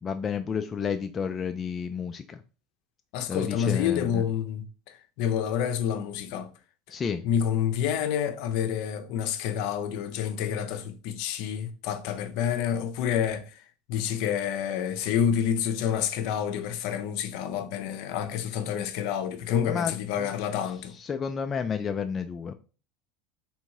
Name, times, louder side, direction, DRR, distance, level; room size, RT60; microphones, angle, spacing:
voice 1, 0.0-2.4 3.3-4.2 6.9-7.2 19.7-20.3 20.9-22.5, left 6 dB, 25° left, 0.3 m, -31 dB
voice 2, 3.1-6.5 7.2-13.4 13.9-21.0, left 9 dB, 60° left, 0.6 m, -28 dB
3.5 x 2.8 x 4.6 m
supercardioid pair, 135°, 0 cm